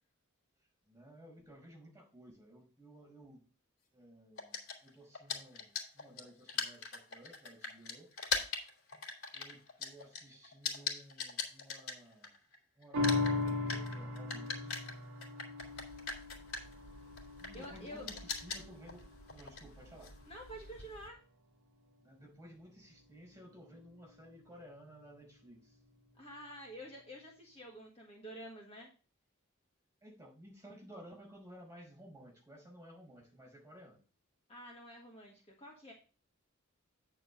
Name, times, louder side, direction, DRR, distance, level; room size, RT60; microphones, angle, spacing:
voice 1, 0.9-3.4 3.9-8.1 9.3-12.3 12.8-14.8 17.4-19.0 19.3-20.1 22.0-25.8 30.0-34.0, equal, 15° right, 0 dB, 5.4 m, -55 dB
sound 1, 4.4-12.5 12.8-21.1, left 5 dB, 75° left, 2.8 m, -41 dB
sound 2, 12.9-19.6 20.1-20.2, left 3 dB, 75° right, 1.1 m, -38 dB
voice 2, 17.5-18.1 20.3-21.2 26.1-28.9 34.5-35.9, equal, 30° left, -1 dB, 1.6 m, -49 dB
9.1 x 4.7 x 5.3 m, 0.36 s
head